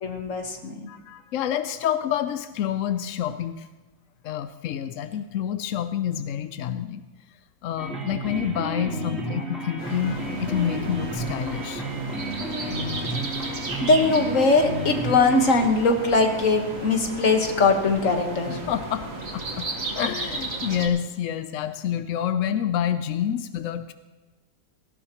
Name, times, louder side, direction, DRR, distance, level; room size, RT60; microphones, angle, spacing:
voice 1, 0.0-0.9 9.0-9.5 13.4-13.5 13.8-18.6, left 3 dB, 50° left, 4 dB, 1.8 m, -21 dB
voice 2, 0.9-3.7 4.2-7.0 7.6-11.9 18.7-19.7 19.9-23.9, left 9 dB, 70° left, 11 dB, 0.8 m, -28 dB
sound 1, 7.8-15.7, right 1 dB, ahead, 3.6 m, -32 dB
sound 2, 9.8-20.9, right 2 dB, 50° right, 2.1 m, -35 dB
17.5 x 16.0 x 3.0 m, 1.2 s
omnidirectional pair, 1.8 m